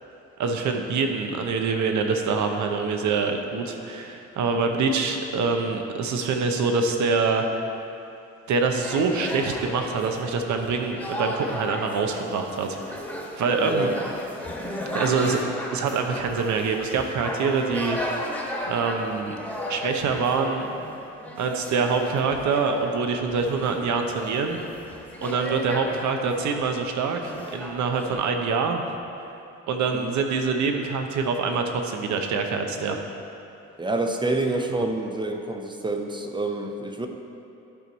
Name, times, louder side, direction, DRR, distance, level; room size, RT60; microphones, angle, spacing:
voice 1, 0.4-7.6 8.5-13.1 13.4-13.9 14.9-15.4 15.7-18.3 18.7-19.4 19.7-20.7 21.4-24.6 25.2-28.8 29.7-33.0 34.7-34.9, right 4 dB, 70° right, 4 dB, 0.9 m, -25 dB
sound 1, 8.8-28.1, left 1 dB, 5° left, 1.3 m, -35 dB
voice 2, 13.5-14.0 29.9-30.2 33.8-37.1, right 2 dB, 15° right, 4 dB, 0.7 m, -28 dB
11.5 x 4.6 x 4.1 m, 2.8 s
cardioid pair, 90°, 30 cm